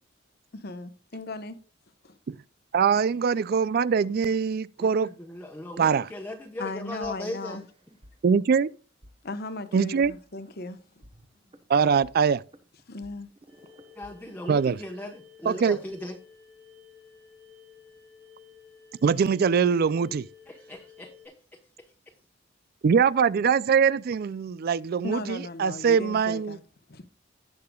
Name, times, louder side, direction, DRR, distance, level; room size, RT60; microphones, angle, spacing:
voice 1, 0.5-1.6 2.0-2.2 6.6-7.6 9.2-10.8 12.9-13.3 25.0-26.6 26.9-27.0, left 2 dB, 55° left, 1.1 m, -37 dB
voice 2, 2.7-5.1 5.8-6.1 8.2-8.7 9.7-10.1 11.7-12.4 14.5-14.8 15.5-15.8 19.0-20.3 22.8-26.6, right 6 dB, 50° right, 0.3 m, -23 dB
voice 3, 4.8-7.7 13.9-16.2 20.5-21.3 21.8-21.9, left 1 dB, 10° left, 1.1 m, -38 dB
sound 1, 7.0-8.1 8.4-8.6 9.0-9.1 9.7-10.7 11.0-15.0, equal, 30° right, 1.0 m, -54 dB
sound 2, 13.5-21.3, left 6 dB, 75° right, 4.6 m, -53 dB
17.0 x 6.7 x 2.3 m
head